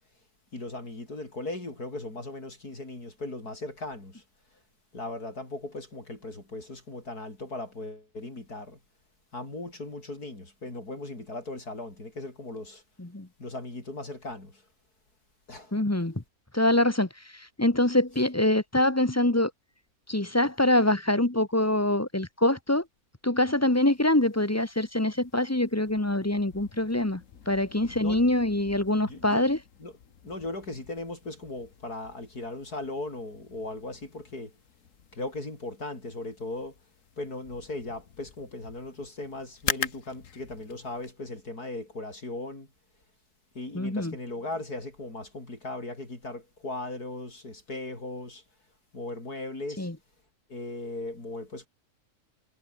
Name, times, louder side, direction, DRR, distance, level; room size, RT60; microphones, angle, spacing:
voice 1, 0.5-4.2 4.9-8.8 9.3-12.8 13.4-14.6 15.5-15.8 28.0-28.2 29.0-29.5 29.8-29.9 30.2-34.5 35.1-36.8 37.2-42.7 43.6-48.4 48.9-49.9 50.5-51.7, left 2 dB, 80° left, 7.1 m, -38 dB
voice 2, 15.7-16.2 16.5-19.5 20.1-22.8 23.2-27.2 27.5-29.6 43.7-44.1 49.8-49.9, left 1 dB, 10° left, 1.2 m, -24 dB
sound 1, 23.7-41.1, left 7 dB, 55° left, 1.6 m, -43 dB
omnidirectional pair, 1.6 m